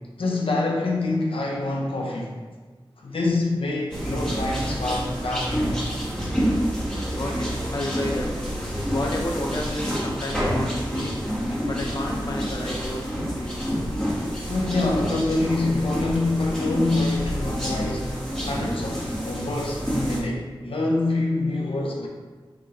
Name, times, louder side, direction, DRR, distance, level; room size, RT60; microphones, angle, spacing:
voice 1, 0.2-2.4 3.0-6.1 14.5-18.2 18.4-22.1, left 2 dB, 90° left, -1 dB, 0.7 m, -26 dB
sound 1, 3.9-20.2, equal, 10° left, 1.3 m, -28 dB
voice 2, 7.1-8.3 8.9-11.1 11.6-13.6, left 1 dB, 45° left, 0 dB, 0.6 m, -31 dB
5.8 x 3.2 x 2.9 m, 1.4 s
wide cardioid pair, 80°, 9 cm